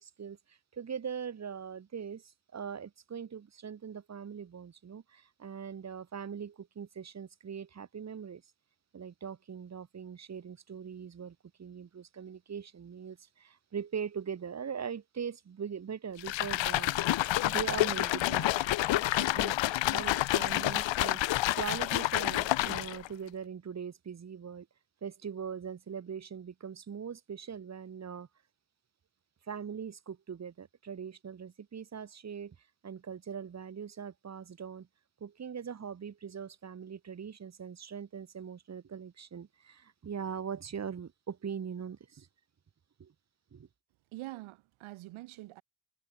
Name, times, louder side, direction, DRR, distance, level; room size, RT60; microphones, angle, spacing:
voice 1, 0.0-8.4 8.9-16.9 17.4-18.6 18.9-19.6 19.9-24.7 25.0-28.3 29.5-32.6 32.8-34.9 35.2-42.3 43.0-43.1 43.5-43.7, right 7 dB, 30° right, 6.9 m, -41 dB
sound 1, 16.2-23.1, left 15 dB, 65° left, 3.1 m, -29 dB
voice 2, 44.1-45.6, right 18 dB, 75° right, 6.3 m, -45 dB
cardioid pair, 130°, 49 cm